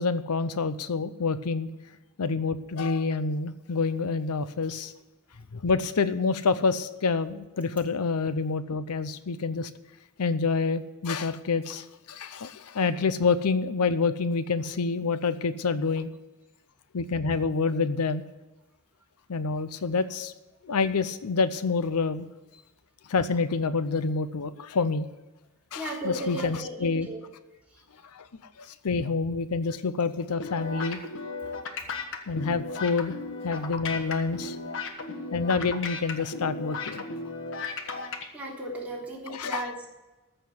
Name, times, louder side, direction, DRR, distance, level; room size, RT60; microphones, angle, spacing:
voice 1, 0.0-1.7 2.2-4.9 5.5-9.7 10.2-16.1 16.9-18.2 19.3-20.3 20.7-22.3 23.1-25.1 25.7-27.1 28.1-28.3 28.6-31.0 32.3-33.1 33.4-34.6 35.3-37.1 37.9-38.0 39.3-39.7, left 4 dB, 90° left, 13 dB, 0.7 m, -27 dB
voice 2, 25.7-27.2 27.7-27.8 38.3-39.9, right 1 dB, 5° right, -5 dB, 3.6 m, -35 dB
sound 1, 30.4-38.2, left 3 dB, 60° left, 1.4 m, -35 dB
14.0 x 6.8 x 7.8 m, 1.1 s
head